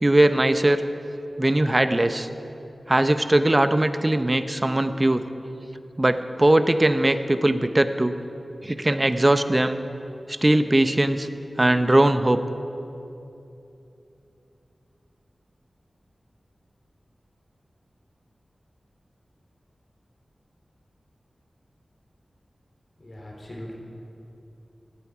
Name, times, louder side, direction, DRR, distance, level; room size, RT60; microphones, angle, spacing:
voice 1, 0.0-0.8 1.4-2.3 2.9-5.2 6.0-8.2 8.6-9.8 10.3-11.3 11.6-12.4, right 1 dB, 30° right, 10 dB, 0.7 m, -20 dB
voice 2, 23.0-23.7, left 1 dB, 50° left, -1 dB, 3.5 m, -39 dB
17.0 x 11.5 x 4.9 m, 2.9 s
cardioid pair, 50°, 0 cm